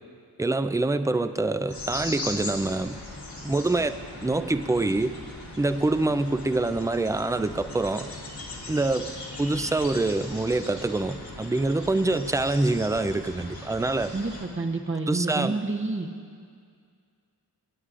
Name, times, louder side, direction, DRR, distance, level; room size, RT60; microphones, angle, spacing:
voice 1, 0.4-3.0 3.4-5.1 5.6-8.1 8.7-9.1 9.4-14.1 15.1-15.5, right 2 dB, 10° right, 10 dB, 0.4 m, -25 dB
sound 1, 1.7-14.5, left 2 dB, 75° left, 2.1 m, -39 dB
voice 2, 14.1-16.1, right 3 dB, 30° right, 1 dB, 0.9 m, -29 dB
24.5 x 9.6 x 2.5 m, 2.2 s
wide cardioid pair, 60°, 40 cm